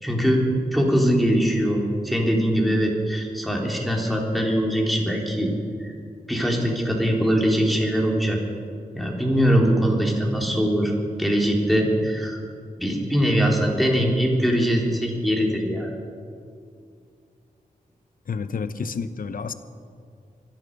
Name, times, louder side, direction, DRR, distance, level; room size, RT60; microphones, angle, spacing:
voice 1, 0.0-5.5 5.8-5.9 6.3-8.4 9.0-10.9 11.2-12.4 12.8-15.9, equal, ahead, -1 dB, 3.3 m, -22 dB
voice 2, 18.3-19.5, left 5 dB, 70° left, 11 dB, 0.8 m, -29 dB
25.0 x 10.5 x 5.3 m, 2.3 s
wide cardioid pair, 90°, 15 cm